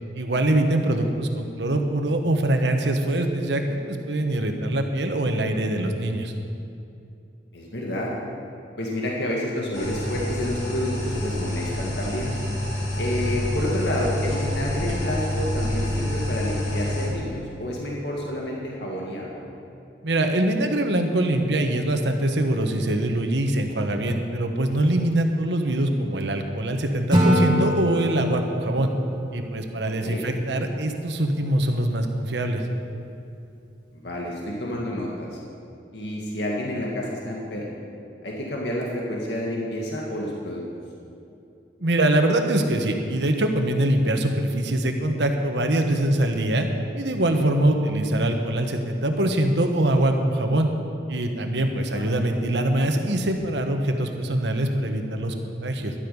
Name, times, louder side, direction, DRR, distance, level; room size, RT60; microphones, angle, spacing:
voice 1, 0.1-6.3 20.0-28.9 29.3-32.6 41.8-46.7 46.9-50.7 51.1-55.9, right 1 dB, 85° right, 5 dB, 1.2 m, -23 dB
voice 2, 7.5-8.1 8.8-12.3 13.0-19.4 30.0-30.3 33.9-35.4 35.9-37.8 38.2-40.6 51.7-52.1, left 1 dB, 80° left, -3 dB, 1.9 m, -29 dB
sound 1, 9.7-17.1, left 1 dB, 40° left, 2.7 m, -27 dB
Acoustic guitar / Strum, 27.1-30.3, equal, 25° right, 2.0 m, -25 dB
12.5 x 11.5 x 5.4 m, 2.7 s
head